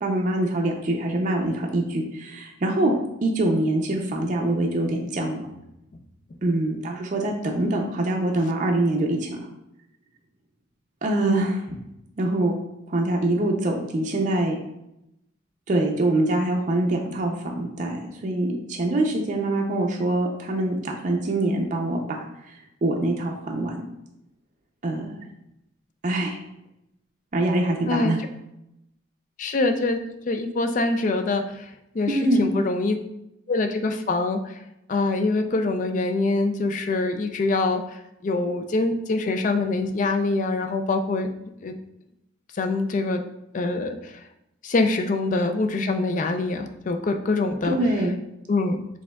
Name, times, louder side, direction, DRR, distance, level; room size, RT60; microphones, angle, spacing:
voice 1, 0.0-2.9 3.2-5.4 6.4-9.5 11.0-11.8 12.2-12.5 12.9-14.6 15.7-22.2 22.8-23.8 24.8-25.1 26.0-26.4 27.3-28.2 32.1-32.5 47.6-48.1, right 1 dB, 40° right, 0 dB, 0.5 m, -24 dB
voice 2, 29.4-30.0 30.3-31.4 32.0-33.0 33.5-34.4 34.9-37.8 38.2-41.3 41.6-41.7 42.6-43.2 43.5-44.0 44.6-47.8 48.5-48.8, left 3 dB, 45° left, 6 dB, 0.4 m, -24 dB
5.0 x 3.5 x 2.3 m, 0.85 s
head